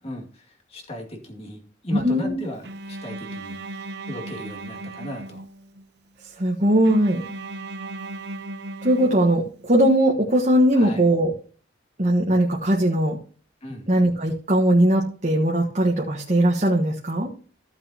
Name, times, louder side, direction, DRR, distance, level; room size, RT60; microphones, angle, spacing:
voice 1, 0.0-5.4 10.7-11.0 13.6-13.9, left 1 dB, 35° left, 1 dB, 2.3 m, -36 dB
voice 2, 2.0-2.4 6.4-7.2 8.8-11.3 12.0-13.2 13.9-17.3, right 1 dB, 45° right, -1 dB, 1.4 m, -20 dB
Bowed string instrument, 2.6-5.8 6.8-9.8, right 2 dB, 65° right, 0.9 m, -36 dB
15.0 x 7.2 x 2.9 m, 0.40 s
head